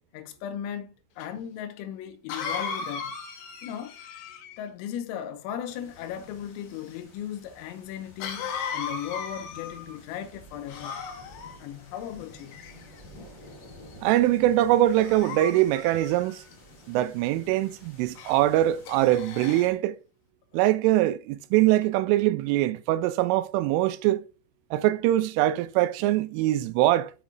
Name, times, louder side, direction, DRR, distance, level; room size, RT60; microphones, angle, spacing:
voice 1, 0.0-3.2 3.6-4.0 4.6-11.1 11.6-12.6, left 10 dB, 90° left, 3.5 m, -37 dB
Cough, 1.2-1.3 2.3-4.7 8.2-10.0 10.7-11.6 12.3-13.0 13.6-13.9 14.9-16.5 18.2-18.4 18.9-19.7, left 6 dB, 70° left, 2.9 m, -37 dB
sound 1, 5.7-19.7, left 1 dB, 40° left, 2.8 m, -51 dB
voice 2, 14.0-16.4 16.9-20.0 20.5-24.2 24.7-27.1, right 14 dB, 85° right, 2.9 m, -23 dB
7.1 x 5.9 x 3.8 m
omnidirectional pair, 5.9 m